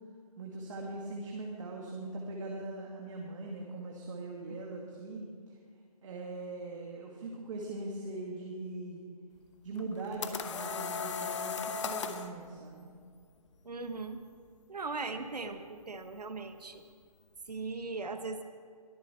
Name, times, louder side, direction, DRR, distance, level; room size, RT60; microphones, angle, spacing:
voice 1, 0.4-5.3 6.0-9.0 9.6-12.9, right 2 dB, 55° right, -2 dB, 2.1 m, -41 dB
sound 1, 9.8-12.3, left 6 dB, 50° left, 1.0 m, -36 dB
voice 2, 13.6-14.2 14.7-16.8 17.5-18.4, right 3 dB, 85° right, 8 dB, 1.2 m, -39 dB
22.0 x 8.4 x 4.4 m, 2.1 s
hypercardioid pair, 150°, 20 cm